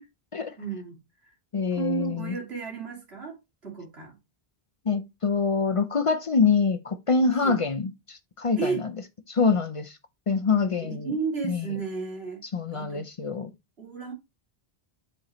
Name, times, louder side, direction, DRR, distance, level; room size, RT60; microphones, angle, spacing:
voice 1, 0.6-1.0 1.2-1.3 1.7-4.2 7.3-7.6 8.6-8.8 10.8-12.4 12.7-13.0 13.8-14.1, right 5 dB, 85° right, 2.8 m, -33 dB
voice 2, 1.5-2.3 4.9-8.7 9.3-10.0 10.3-11.1 11.5-11.6 12.5-13.5, left 5 dB, 40° left, 0.5 m, -25 dB
8.8 x 4.4 x 3.0 m
omnidirectional pair, 1.0 m